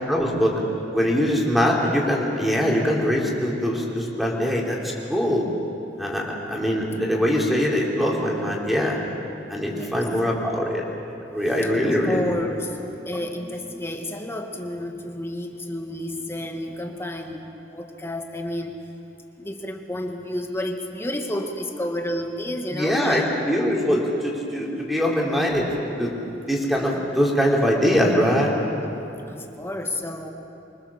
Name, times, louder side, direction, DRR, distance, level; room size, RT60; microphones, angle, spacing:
voice 1, 0.1-0.6 0.9-5.5 6.0-9.0 9.5-10.8 11.3-12.3 22.7-25.7 26.0-26.1 26.5-28.5, equal, ahead, -3 dB, 3.7 m, -22 dB
voice 2, 11.6-18.7 19.4-23.3 29.3-30.3, left 1 dB, 15° left, 3 dB, 1.6 m, -31 dB
26.0 x 23.5 x 7.3 m, 2.8 s
head